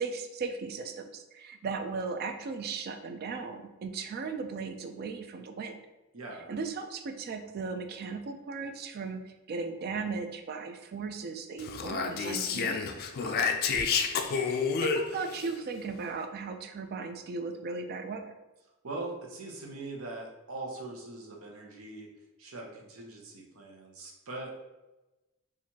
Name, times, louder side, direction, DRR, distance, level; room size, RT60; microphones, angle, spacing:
voice 1, 0.0-5.8 6.5-12.9 14.5-18.3, right 4 dB, 45° right, 6 dB, 0.3 m, -37 dB
voice 2, 6.1-6.5 13.1-13.6 18.8-22.1 22.4-24.5, right 2 dB, 85° right, 0 dB, 0.8 m, -41 dB
Speech, 11.6-15.5, left 5 dB, 45° left, 0.3 m, -30 dB
4.4 x 2.5 x 2.7 m, 1.0 s
head